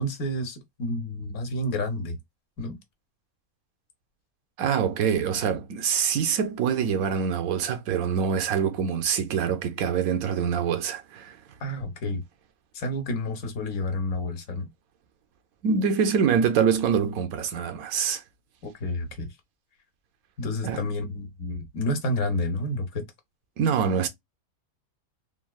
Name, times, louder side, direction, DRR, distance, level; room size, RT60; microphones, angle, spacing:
voice 1, 0.0-2.2 2.6-2.8 11.6-12.2 12.7-14.6 18.6-19.3 20.4-23.0, left 1 dB, 70° left, 1.2 m, -30 dB
voice 2, 4.6-11.4 15.6-18.2 20.6-20.8 23.6-24.1, right 7 dB, 75° right, 1.0 m, -25 dB
3.6 x 2.2 x 2.2 m
omnidirectional pair, 1.6 m